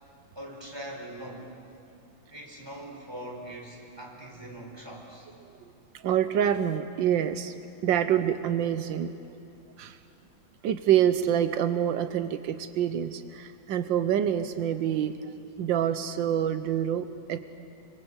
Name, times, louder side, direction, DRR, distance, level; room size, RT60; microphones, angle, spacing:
voice 1, 0.4-1.5 2.3-5.3, right 1 dB, 15° right, 0 dB, 4.2 m, -42 dB
voice 2, 5.9-7.5 7.8-9.1 9.8-10.0 10.6-17.4, right 10 dB, 85° right, 11 dB, 1.6 m, -26 dB
26.0 x 26.0 x 8.1 m, 2.6 s
omnidirectional pair, 2.0 m